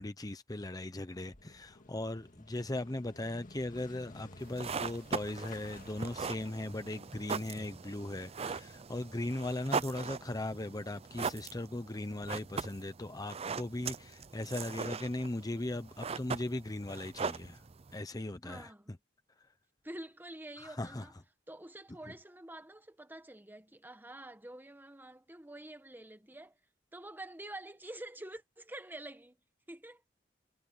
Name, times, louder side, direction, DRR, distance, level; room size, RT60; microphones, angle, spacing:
voice 1, 0.0-17.6 17.9-19.0 19.4-19.5 20.6-21.1, left 1 dB, 20° left, 0.8 m, -38 dB
Motorcycle / Engine starting, 1.1-6.9, left 2 dB, 45° left, 2.1 m, -55 dB
sound 1, 4.4-18.0, right 5 dB, 35° right, 0.5 m, -40 dB
voice 2, 18.4-18.9 19.8-21.1 21.5-26.6 26.9-29.4 29.7-30.0, right 1 dB, 10° right, 1.5 m, -47 dB
head